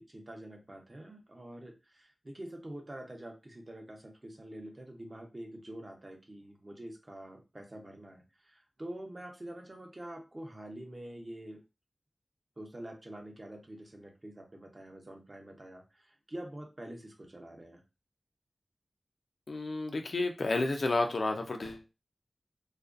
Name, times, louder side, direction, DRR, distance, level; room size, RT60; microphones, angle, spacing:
voice 1, 0.0-11.6 12.6-17.8, right 1 dB, 35° right, 2 dB, 0.7 m, -46 dB
voice 2, 19.5-21.8, left 2 dB, 75° left, 5 dB, 0.4 m, -31 dB
2.4 x 2.2 x 2.4 m, 0.27 s
wide cardioid pair, 80°, 0 cm